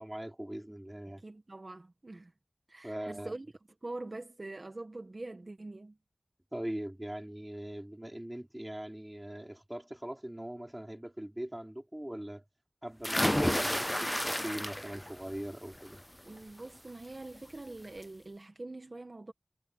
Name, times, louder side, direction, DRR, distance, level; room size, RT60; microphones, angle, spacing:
voice 1, 0.0-1.2 2.8-3.3 6.5-12.4 12.8-16.0, right 1 dB, 20° right, 5.1 m, -41 dB
voice 2, 1.1-2.3 2.7-3.5 3.8-6.0 16.2-19.3, right 2 dB, 60° right, 1.7 m, -44 dB
sound 1, 13.0-15.1 15.5-16.0 17.3-17.4 17.8-17.9, equal, 10° left, 0.4 m, -30 dB
wide cardioid pair, 55°, 0 cm